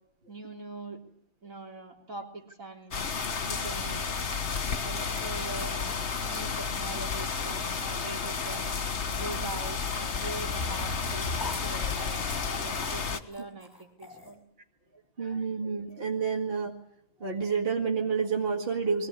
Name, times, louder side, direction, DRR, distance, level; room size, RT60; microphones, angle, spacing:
voice 1, 0.3-1.0 1.4-3.0 3.4-4.1 4.8-5.9 6.3-8.8 9.1-14.4, right 2 dB, 75° right, 0 dB, 4.0 m, -42 dB
sound 1, 2.9-13.2, left 5 dB, 60° left, 1.6 m, -32 dB
sound 2, 9.4-11.6 12.0-14.3, left 2 dB, 15° left, 6.2 m, -44 dB
voice 2, 15.2-16.7 17.2-19.1, right 5 dB, 45° right, 1 dB, 2.3 m, -29 dB
22.0 x 18.0 x 9.9 m, 0.71 s
omnidirectional pair, 1.4 m